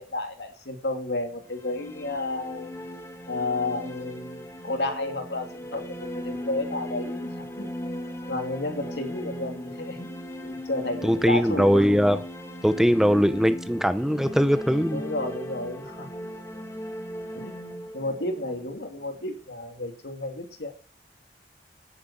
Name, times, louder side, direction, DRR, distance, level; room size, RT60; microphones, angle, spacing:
voice 1, 0.0-2.8 3.3-7.7 8.3-10.1 10.4-12.2 14.9-16.1 17.3-20.7, left 2 dB, 65° left, 4 dB, 2.7 m, -32 dB
sound 1, 1.4-19.3, equal, 15° left, 1.5 m, -38 dB
voice 2, 11.0-12.2 12.6-15.0, equal, ahead, 11 dB, 0.6 m, -21 dB
10.0 x 9.3 x 5.8 m, 0.40 s
head